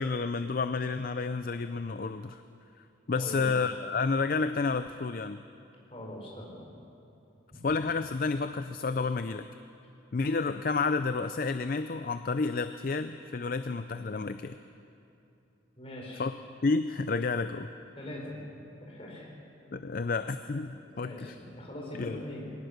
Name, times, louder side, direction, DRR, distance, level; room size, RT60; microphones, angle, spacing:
voice 1, 0.0-2.4 3.1-5.4 7.6-9.5 10.1-14.6 16.2-16.3 16.6-17.7 19.7-21.3 21.9-22.2, left 4 dB, 45° left, 11 dB, 0.4 m, -30 dB
voice 2, 3.1-3.5 5.9-6.7 15.8-16.3 17.9-18.4 18.8-19.3 20.9-22.5, left 1 dB, 30° left, -2 dB, 4.7 m, -42 dB
22.5 x 18.0 x 6.6 m, 2.7 s
head